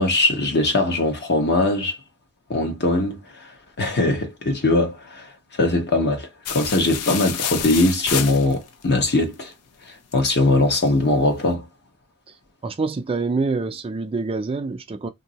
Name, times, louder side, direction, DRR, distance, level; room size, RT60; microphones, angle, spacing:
voice 1, 0.0-2.0 2.5-3.5 3.8-5.3 5.6-9.5 10.1-11.6, left 2 dB, 50° left, 1.1 m, -21 dB
sound 1, 6.5-8.8, left 8 dB, 80° left, 0.5 m, -28 dB
voice 2, 12.6-15.1, right 3 dB, 25° right, 0.4 m, -26 dB
2.8 x 2.6 x 3.9 m
head